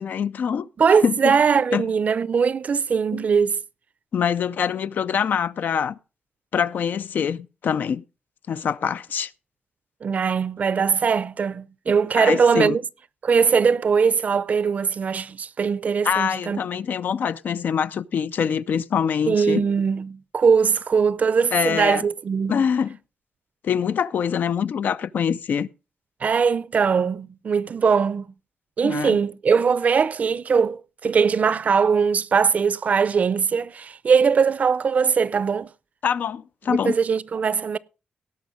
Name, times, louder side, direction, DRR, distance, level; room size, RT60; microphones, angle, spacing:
voice 1, 0.0-0.7 1.0-1.4 1.7-1.8 3.1-3.2 4.1-6.0 6.5-8.0 8.5-9.3 12.1-12.8 16.0-19.7 21.5-22.0 22.5-23.0 23.6-25.7 28.8-29.2 36.0-36.9, left 7 dB, 70° left, 0.5 m, -24 dB
voice 2, 0.8-3.6 10.0-12.8 13.2-16.6 19.3-22.6 26.2-28.3 28.8-35.7 36.7-37.8, right 6 dB, 50° right, 0.5 m, -21 dB
17.5 x 6.3 x 5.2 m
wide cardioid pair, 115°, 3 cm